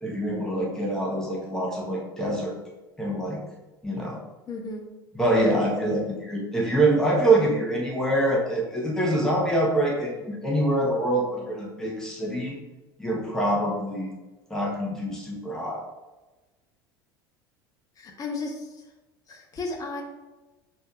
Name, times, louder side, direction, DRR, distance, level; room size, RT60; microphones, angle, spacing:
voice 1, 0.0-2.5 3.0-3.4 3.8-4.2 5.1-12.6 13.0-14.1 14.5-15.8, right 1 dB, 5° left, -3 dB, 1.1 m, -25 dB
voice 2, 4.5-4.9 18.0-18.7 19.3-20.0, left 3 dB, 30° left, 2 dB, 0.9 m, -34 dB
6.6 x 3.0 x 2.4 m, 1.1 s
figure-of-eight pair, 70°, 12 cm